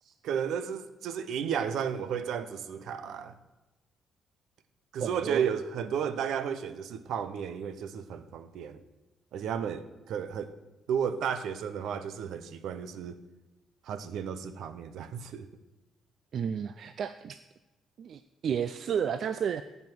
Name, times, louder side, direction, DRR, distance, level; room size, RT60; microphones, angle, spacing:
voice 1, 0.2-3.3 4.9-8.8 9.3-10.5 10.9-13.2 13.9-15.5, right 7 dB, 80° right, 12 dB, 0.8 m, -33 dB
voice 2, 5.0-5.4 16.3-17.4 18.0-19.6, right 8 dB, 60° right, 12 dB, 0.4 m, -32 dB
14.0 x 5.6 x 6.1 m, 1.1 s
cardioid pair, 90°, 0 cm